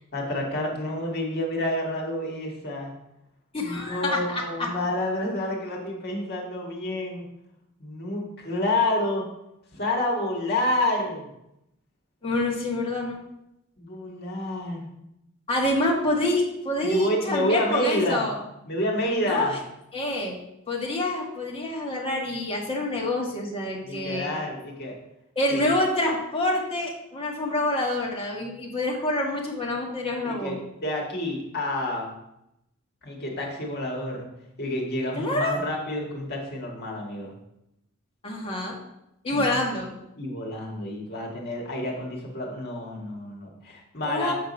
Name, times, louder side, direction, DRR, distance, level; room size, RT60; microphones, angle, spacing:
voice 1, 0.1-2.9 3.6-7.3 7.8-9.2 9.7-11.3 13.8-14.9 16.8-18.3 18.7-19.6 23.8-25.0 25.5-25.8 30.2-32.1 33.0-34.3 34.6-37.3 39.3-39.6 40.2-44.3, left 1 dB, 50° left, -1 dB, 1.9 m, -29 dB
voice 2, 3.5-4.7 12.2-13.2 15.5-18.4 19.2-19.6 19.9-20.4 20.7-24.3 25.3-30.6 35.2-35.6 38.2-38.8 39.2-39.9 44.1-44.3, left 1 dB, 25° left, -2 dB, 1.6 m, -27 dB
7.1 x 5.2 x 5.4 m, 0.83 s
head